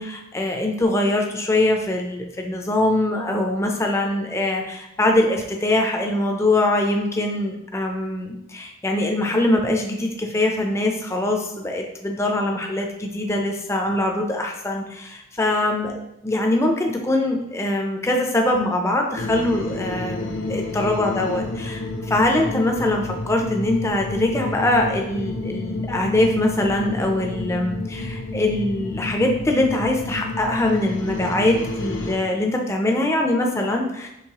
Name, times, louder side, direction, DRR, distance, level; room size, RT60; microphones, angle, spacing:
voice 1, 0.0-34.1, left 1 dB, 15° left, 2 dB, 0.4 m, -23 dB
sound 1, 19.2-32.2, left 2 dB, 65° left, 0.5 m, -30 dB
4.6 x 3.1 x 2.8 m, 0.85 s
head